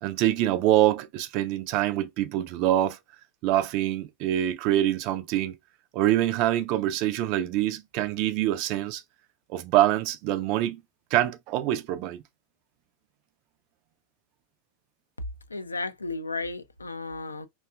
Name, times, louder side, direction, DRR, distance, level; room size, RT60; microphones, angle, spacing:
voice 1, 0.0-3.0 3.4-5.6 5.9-9.0 9.5-10.8 11.1-12.2, right 13 dB, 45° right, 0.3 m, -25 dB
voice 2, 15.5-17.5, left 3 dB, 80° left, 0.3 m, -34 dB
2.7 x 2.3 x 2.3 m
figure-of-eight pair, 90°, 0 cm